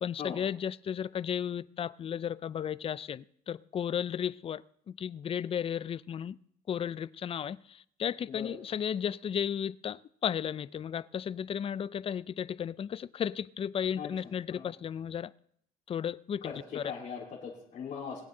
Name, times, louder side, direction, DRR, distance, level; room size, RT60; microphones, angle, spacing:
voice 1, 0.0-6.4 6.7-15.3 15.9-16.8, left 8 dB, 35° left, 0.4 m, -34 dB
voice 2, 16.8-18.2, left 7 dB, 55° left, 3.9 m, -39 dB
21.5 x 8.1 x 3.8 m
cardioid pair, 110°, 17 cm